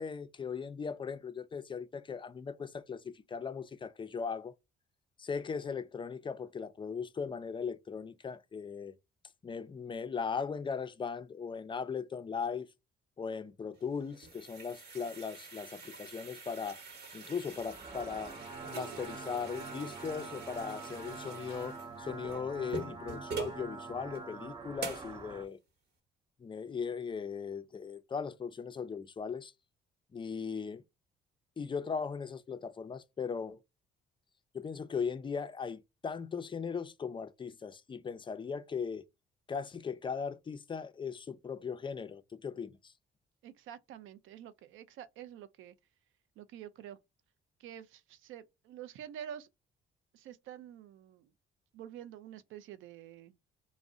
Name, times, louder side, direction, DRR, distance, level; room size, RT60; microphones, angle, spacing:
voice 1, 0.0-4.5 5.2-8.9 9.4-12.7 13.2-16.8 17.1-18.4 18.7-25.6 26.4-29.5 30.1-30.8 31.6-33.6 34.5-39.0 39.5-42.8, left 6 dB, 25° left, 0.3 m, -38 dB
Tap Filling Kettle, 13.8-23.6 24.1-24.2 24.8-25.2, right 4 dB, 55° right, 1.0 m, -45 dB
sound 1, 17.5-25.5, right 4 dB, 25° right, 0.6 m, -45 dB
voice 2, 43.4-45.7 46.4-47.0 47.6-49.5 50.1-51.3 51.7-53.3, right 10 dB, 80° right, 0.4 m, -48 dB
2.5 x 2.0 x 3.5 m
cardioid pair, 90°, 20 cm